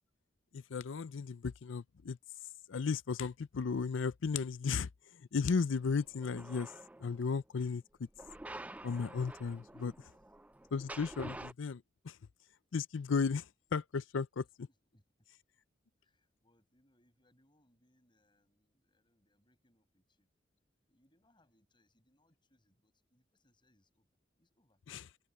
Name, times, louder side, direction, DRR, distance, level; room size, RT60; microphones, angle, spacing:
voice 1, 0.5-2.2 2.7-4.9 5.3-6.7 7.0-8.1 8.8-9.9 10.7-12.2 12.7-13.5 13.7-14.4 24.9-25.0, left 5 dB, 75° left, 0.5 m, -35 dB
sound 1, 5.9-7.3 8.1-11.5, right 1 dB, 10° right, 0.4 m, -49 dB
voice 2, 9.6-10.2 12.6-12.7 14.4-15.3 16.0-20.3 20.8-24.1 24.3-24.8, left 1 dB, 25° left, 7.5 m, -74 dB
head